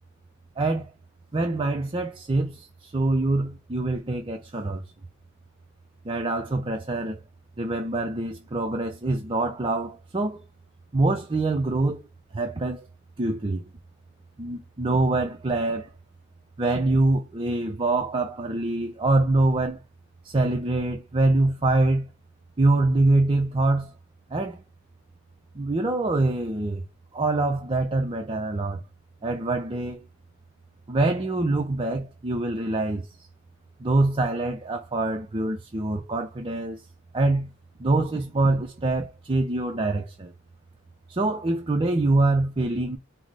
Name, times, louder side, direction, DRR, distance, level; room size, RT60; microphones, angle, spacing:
voice 1, 0.6-0.9 1.3-4.8 6.0-7.2 7.6-10.4 10.9-12.1 12.3-12.9 13.2-13.6 14.4-15.9 16.6-19.8 20.2-22.1 22.6-23.9 24.3-24.6 25.5-26.8 27.1-28.8 29.2-30.0 30.9-33.1 33.8-36.8 37.1-37.5 37.8-40.3 41.1-43.0, right 2 dB, 25° right, 0.5 m, -25 dB
4.7 x 2.0 x 4.0 m
head